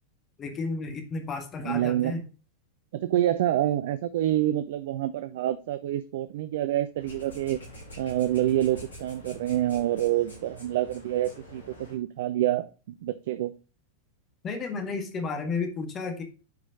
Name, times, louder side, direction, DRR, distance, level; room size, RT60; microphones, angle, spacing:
voice 1, 0.4-2.2 14.4-16.2, left 4 dB, 25° left, 6 dB, 1.6 m, -32 dB
voice 2, 1.6-2.2 2.9-7.6 8.0-12.7 13.0-13.5, right 13 dB, 55° right, 13 dB, 0.4 m, -27 dB
sound 1, 7.0-12.0, equal, 70° left, 3.5 m, -46 dB
9.4 x 5.1 x 3.6 m, 0.34 s
figure-of-eight pair, 90°, 0 cm